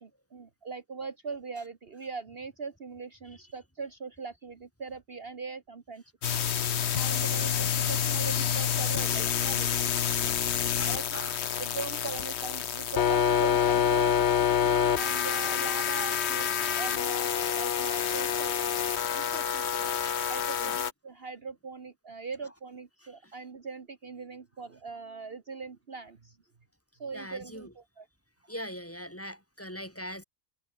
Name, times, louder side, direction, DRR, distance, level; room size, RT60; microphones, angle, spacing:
voice 1, 0.0-6.0 6.7-9.8 10.8-11.0 11.6-14.1 14.6-18.7 19.1-19.9 20.3-26.4 27.0-28.0, right 4 dB, 45° right, 1.6 m, -41 dB
sound 1, 6.2-20.9, left 8 dB, 55° left, 1.1 m, -27 dB
voice 2, 10.8-11.5 12.9-13.0 18.9-19.2 20.0-20.3 20.6-20.8 22.4-22.5 23.0-23.3 27.1-27.7 28.5-30.2, equal, 10° left, 4.4 m, -42 dB
omnidirectional pair, 1.4 m